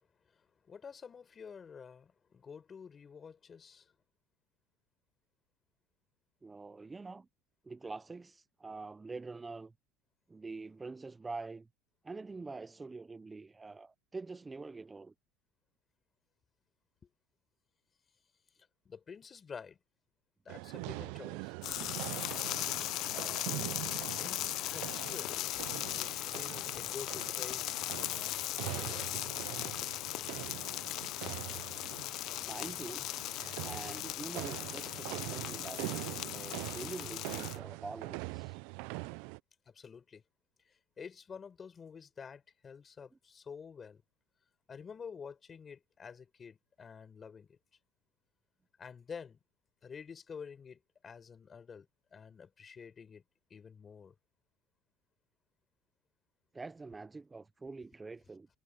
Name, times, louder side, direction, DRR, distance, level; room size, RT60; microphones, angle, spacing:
voice 1, 0.7-3.9 18.9-19.8 20.5-21.5 23.1-23.4 24.2-24.4 24.7-25.5 26.0-28.8 39.7-40.2 40.7-44.0 44.7-47.6 48.8-49.4 49.8-51.9 52.1-53.2 53.5-54.1, left 6 dB, 25° left, 5.2 m, -49 dB
voice 2, 6.4-7.3 7.6-9.7 10.3-11.7 12.0-15.1 32.4-33.1 33.6-38.6 56.5-58.5, right 3 dB, 15° right, 0.5 m, -45 dB
sound 1, 20.5-39.4, right 26 dB, 75° right, 0.4 m, -43 dB
sound 2, 21.6-37.6, left 16 dB, 55° left, 0.4 m, -38 dB
cardioid pair, 135°, 0 cm